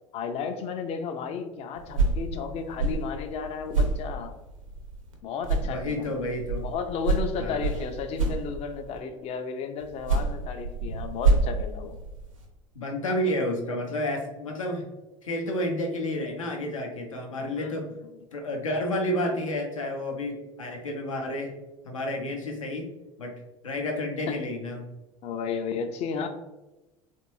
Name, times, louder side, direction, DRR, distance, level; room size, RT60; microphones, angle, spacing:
voice 1, 0.1-4.3 5.2-6.1 6.6-12.0 17.4-18.0 24.3-24.4 25.2-26.3, left 6 dB, 40° left, 7 dB, 0.4 m, -33 dB
sound 1, 1.7-5.1 5.4-9.0 9.8-12.5, right 3 dB, 85° right, 0.6 m, -28 dB
voice 2, 5.6-6.6 7.4-7.7 12.7-14.8 15.2-17.9 18.3-21.5 21.8-22.9 23.2-23.3 23.6-24.9, left 1 dB, 85° left, 2 dB, 0.6 m, -30 dB
3.1 x 2.6 x 2.9 m, 1.0 s
figure-of-eight pair, 75°, 17 cm